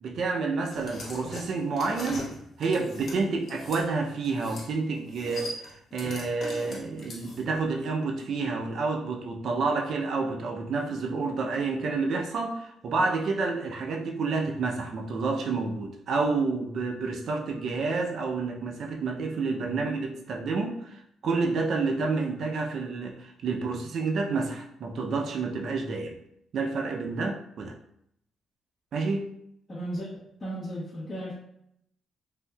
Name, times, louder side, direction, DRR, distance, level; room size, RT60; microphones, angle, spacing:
voice 1, 0.0-2.3 2.6-26.2 26.5-27.7 28.9-29.3, right 4 dB, 60° right, 2 dB, 0.4 m, -29 dB
sound 1, 0.6-3.8 4.2-4.7 4.9-7.6, left 2 dB, 50° left, 0.9 m, -40 dB
voice 2, 29.7-30.1 30.4-31.3, right 1 dB, 25° left, -10 dB, 1.0 m, -34 dB
3.4 x 2.6 x 2.2 m, 0.74 s
cardioid pair, 90°, 0 cm